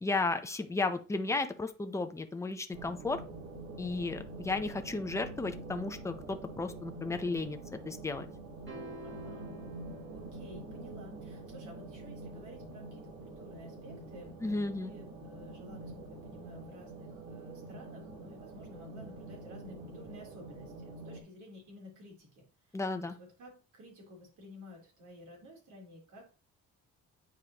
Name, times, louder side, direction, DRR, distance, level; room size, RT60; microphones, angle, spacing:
voice 1, 0.0-3.2 3.8-7.6 7.8-8.3 14.4-14.9 22.7-23.1, left 3 dB, 10° left, 7 dB, 0.5 m, -34 dB
sound 1, 2.7-21.2, right 2 dB, 90° right, 2.0 m, -46 dB
sound 2, 8.7-11.1, right 1 dB, 35° right, 2.6 m, -49 dB
voice 2, 9.0-9.6 9.9-26.2, left 1 dB, 70° right, -1 dB, 3.4 m, -53 dB
8.8 x 4.8 x 2.9 m, 0.34 s
cardioid pair, 150°, 32 cm